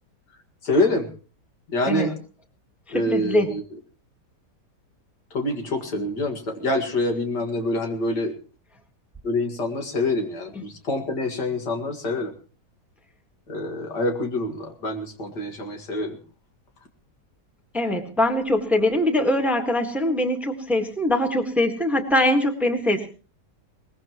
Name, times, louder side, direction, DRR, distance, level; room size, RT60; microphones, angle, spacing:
voice 1, 0.6-1.1 1.7-2.1 2.9-3.6 5.3-8.3 9.2-12.3 13.5-16.2, left 1 dB, 75° left, 4 dB, 2.6 m, -26 dB
voice 2, 2.9-3.5 17.7-23.1, left 1 dB, ahead, 5 dB, 1.5 m, -22 dB
21.5 x 19.5 x 3.0 m, 0.37 s
omnidirectional pair, 1.8 m